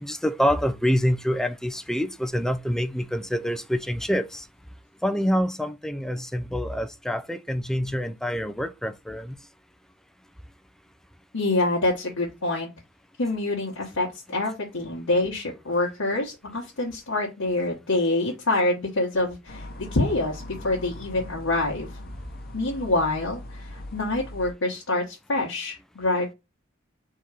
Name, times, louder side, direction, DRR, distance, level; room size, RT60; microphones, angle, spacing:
voice 1, 0.0-4.4 5.0-9.3, equal, ahead, 0.3 m, -26 dB
voice 2, 11.3-12.7 13.2-21.9 22.5-26.3, left 2 dB, 80° left, 1.0 m, -26 dB
sound 1, 19.5-24.5, left 1 dB, 45° left, 0.8 m, -40 dB
3.8 x 2.8 x 4.7 m
head